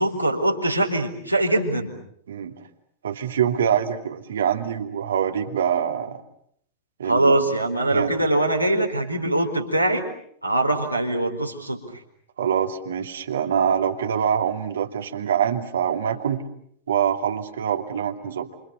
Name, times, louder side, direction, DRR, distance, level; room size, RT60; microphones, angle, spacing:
voice 1, 0.0-1.9 7.0-10.1 10.4-11.8, right 1 dB, 90° right, 0 dB, 4.4 m, -22 dB
voice 2, 3.0-6.2 7.0-7.5 7.9-8.1 12.4-16.4 16.9-18.5, right 8 dB, 65° right, 5 dB, 2.7 m, -24 dB
28.5 x 28.5 x 6.8 m, 0.67 s
figure-of-eight pair, 90°, 0 cm